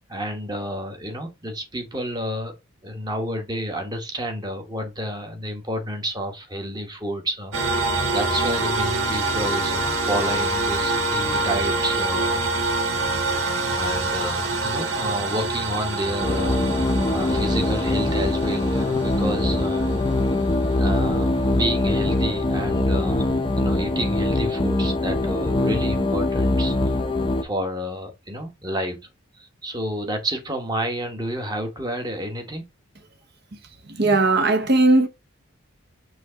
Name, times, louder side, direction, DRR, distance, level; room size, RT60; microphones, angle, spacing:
voice 1, 0.1-2.6 2.8-12.8 13.7-20.1 20.7-27.0 27.4-29.1 29.3-32.7, equal, 20° right, 1.2 m, -30 dB
sound 1, 7.5-24.6, right 2 dB, 65° right, 1.6 m, -27 dB
sound 2, 16.2-27.4, left 2 dB, 25° left, 0.6 m, -22 dB
voice 2, 33.9-35.1, right 2 dB, 50° right, 1.0 m, -18 dB
6.2 x 2.9 x 5.6 m
head